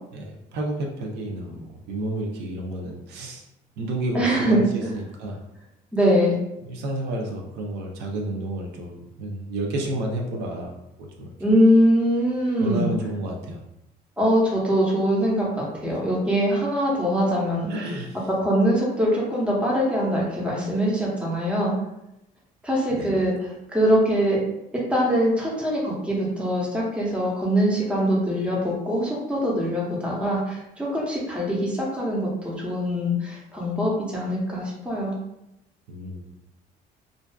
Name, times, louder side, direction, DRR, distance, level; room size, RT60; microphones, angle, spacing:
voice 1, 0.1-3.4 3.8-5.4 6.6-10.7 11.0-11.3 12.6-13.6 17.7-18.2 22.9-23.2 35.9-36.3, right 1 dB, 85° right, 0 dB, 0.5 m, -31 dB
voice 2, 4.1-4.9 5.9-6.4 11.4-12.9 14.2-17.7 18.4-21.7 22.6-23.3 23.7-24.4 24.9-35.1, equal, 5° right, -4 dB, 0.7 m, -22 dB
2.5 x 2.2 x 2.2 m, 0.88 s
cardioid pair, 110°, 17 cm